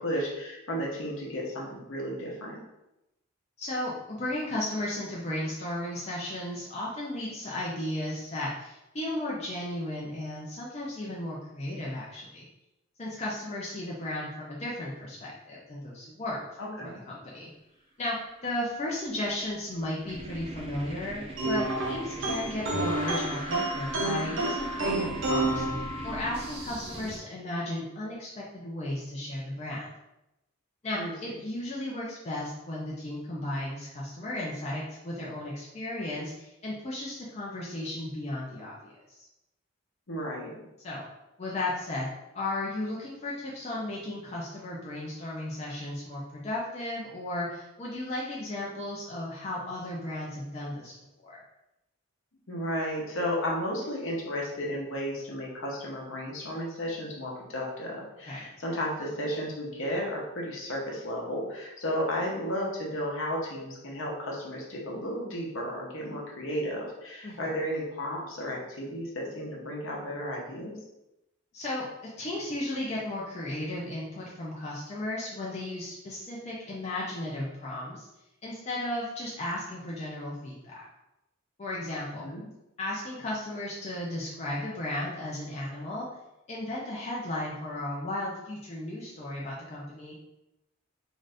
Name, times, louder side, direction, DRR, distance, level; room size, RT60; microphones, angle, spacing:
voice 1, 0.0-2.6 16.6-17.0 30.9-31.1 40.1-40.6 52.5-70.7 82.2-82.4, equal, 65° left, -2 dB, 0.8 m, -33 dB
voice 2, 3.6-12.5 13.0-16.4 16.8-17.5 18.0-29.9 30.8-39.2 40.8-41.0 41.4-42.1 42.3-50.9 51.2-51.4 58.3-58.4 67.2-67.5 71.5-71.8 72.2-78.1 78.4-80.7 81.6-82.3 82.8-86.1 86.5-90.2, left 1 dB, 30° left, -5 dB, 0.4 m, -35 dB
sound 1, 19.1-27.2, right 2 dB, 25° right, 0.3 m, -40 dB
sound 2, 21.4-26.4, right 2 dB, 65° right, 0.6 m, -30 dB
2.5 x 2.5 x 3.3 m, 0.91 s
head